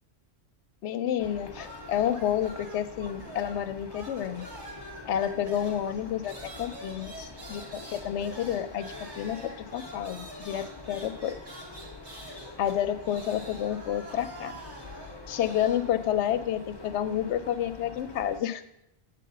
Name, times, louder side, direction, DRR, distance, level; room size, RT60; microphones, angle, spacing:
voice 1, 0.8-4.5 5.1-11.3 12.6-14.5 15.3-18.6, left 10 dB, 90° left, 12 dB, 0.9 m, -30 dB
sound 1, 1.2-18.4, left 3 dB, 25° left, 0.6 m, -46 dB
sound 2, 1.5-3.6 3.9-15.9, right 1 dB, 50° right, 2.1 m, -46 dB
8.4 x 4.0 x 6.7 m, 0.82 s
omnidirectional pair, 1.1 m